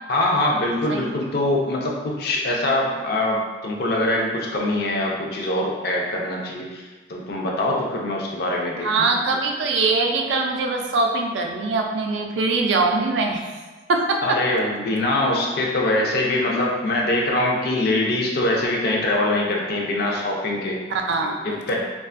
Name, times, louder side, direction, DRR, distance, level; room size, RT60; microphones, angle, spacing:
voice 1, 0.1-6.8 7.1-9.1 14.2-20.8 21.4-21.8, left 1 dB, 55° left, -1 dB, 0.4 m, -23 dB
voice 2, 8.8-13.4 13.9-14.4 20.9-21.4 21.7-21.8, right 3 dB, 75° right, 2 dB, 0.3 m, -22 dB
2.4 x 2.3 x 2.4 m, 1.3 s
head